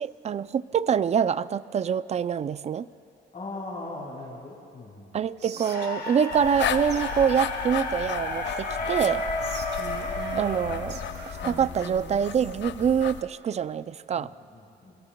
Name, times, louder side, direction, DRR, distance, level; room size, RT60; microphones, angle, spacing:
voice 1, 0.0-2.9 5.1-9.2 10.3-11.0 11.4-14.3, right 7 dB, 35° right, 17 dB, 0.4 m, -25 dB
voice 2, 3.3-5.2 14.1-15.0, left 2 dB, 35° left, -6 dB, 4.2 m, -40 dB
Whispering, 5.4-6.6 6.9-7.0 7.3-8.8 9.4-12.5, right 6 dB, 60° right, 1.1 m, -43 dB
sound 1, 5.6-11.7, left 2 dB, 50° left, 4.3 m, -32 dB
sound 2, 6.3-13.2, left 9 dB, 65° left, 0.6 m, -35 dB
27.0 x 22.0 x 2.2 m, 2.6 s
cardioid pair, 90°, 20 cm